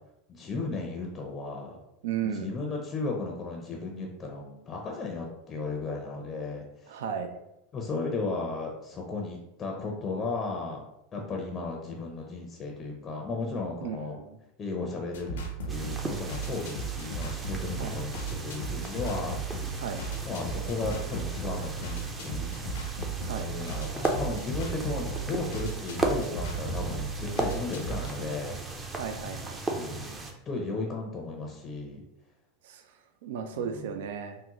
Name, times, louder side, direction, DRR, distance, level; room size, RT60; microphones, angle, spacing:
voice 1, 0.3-1.8 2.2-7.0 7.7-10.8 11.1-14.2 14.6-19.7 20.2-22.7 23.3-28.6 29.7-32.0 33.5-33.9, left 3 dB, 30° left, 1 dB, 0.5 m, -35 dB
voice 2, 2.0-2.5 6.9-7.4 13.8-14.4 17.8-18.0 19.8-20.0 23.3-23.5 28.9-29.6 32.6-32.9 33.2-34.4, right 7 dB, 75° right, 7 dB, 0.3 m, -35 dB
sound 1, 15.1-28.2, right 4 dB, 90° left, 0.7 m, -36 dB
sound 2, 15.7-30.3, right 2 dB, 20° right, 0.5 m, -36 dB
3.6 x 2.1 x 2.9 m, 0.87 s
supercardioid pair, 115°, 0 cm